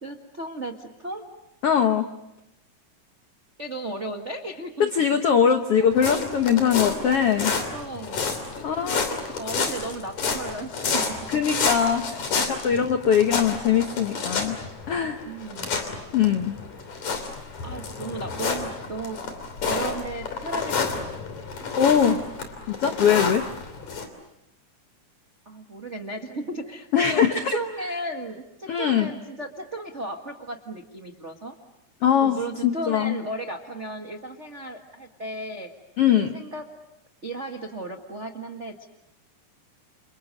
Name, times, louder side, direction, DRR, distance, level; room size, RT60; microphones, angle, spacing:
voice 1, 0.0-1.2 3.6-4.9 6.5-11.0 12.7-13.0 15.2-15.8 17.6-19.2 19.6-21.2 25.4-27.2 27.5-31.5 32.2-35.7 36.1-36.7 37.2-38.8, right 2 dB, 65° right, 2 dB, 0.7 m, -35 dB
voice 2, 1.6-2.1 4.8-7.5 8.6-9.2 11.3-14.6 14.9-15.2 16.1-16.5 21.8-22.3 22.7-23.4 26.9-27.6 28.7-29.1 32.0-33.2 36.0-36.3, left 8 dB, 85° left, 7 dB, 1.3 m, -21 dB
sound 1, 5.9-24.1, left 5 dB, 50° left, 4.2 m, -30 dB
29.5 x 28.5 x 6.6 m, 0.88 s
omnidirectional pair, 4.4 m